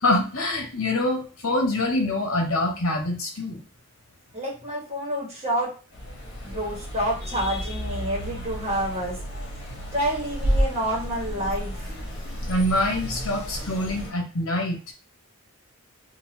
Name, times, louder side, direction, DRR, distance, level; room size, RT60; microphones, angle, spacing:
voice 1, 0.0-3.6 12.5-14.9, left 1 dB, 70° left, 2 dB, 1.0 m, -25 dB
voice 2, 4.3-5.7 6.4-9.2 9.9-12.0, right 1 dB, 30° right, -4 dB, 1.4 m, -28 dB
sound 1, 5.9-14.1, equal, 50° left, 1.2 m, -31 dB
3.7 x 2.5 x 2.9 m, 0.34 s
head